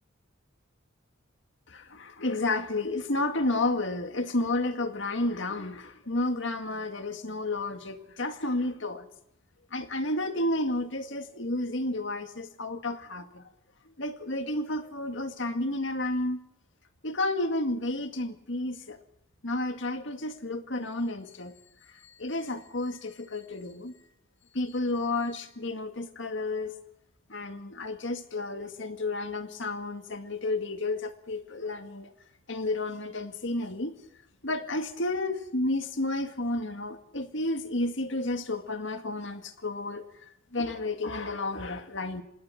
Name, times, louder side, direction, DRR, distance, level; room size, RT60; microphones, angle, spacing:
voice 1, 1.7-9.1 9.7-13.4 13.9-16.4 17.0-19.0 19.4-21.5 21.9-23.9 24.5-26.7 27.3-32.1 32.5-33.9 34.4-42.2, left 2 dB, 65° left, 2.1 m, -31 dB
26.5 x 19.0 x 5.9 m
head